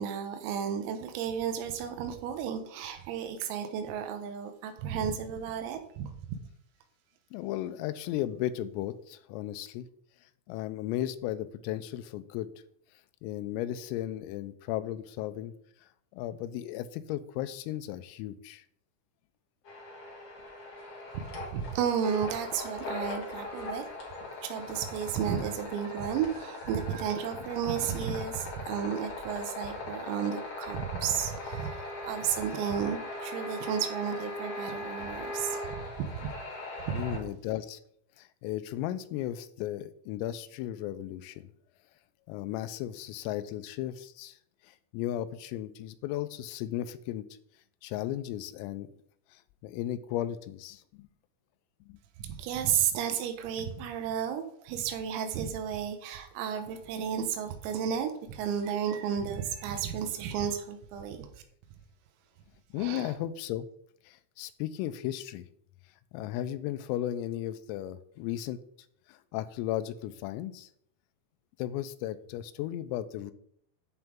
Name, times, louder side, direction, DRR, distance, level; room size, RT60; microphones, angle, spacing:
voice 1, 0.0-6.4 21.1-23.9 24.4-36.3 36.9-37.0 52.2-61.3 62.8-63.2, right 8 dB, 85° right, 3.8 m, -33 dB
voice 2, 7.3-9.9 10.5-12.5 13.2-15.5 16.1-18.6 36.9-37.8 38.2-41.5 42.3-44.4 44.6-47.3 47.8-48.9 49.3-51.1 51.9-52.0 62.7-63.7 64.1-65.5 66.1-68.6 69.1-70.7 71.6-73.3, left 13 dB, 85° left, 3.3 m, -35 dB
sound 1, 19.7-37.2, left 2 dB, 55° left, 1.4 m, -40 dB
10.5 x 8.1 x 3.7 m
omnidirectional pair, 6.0 m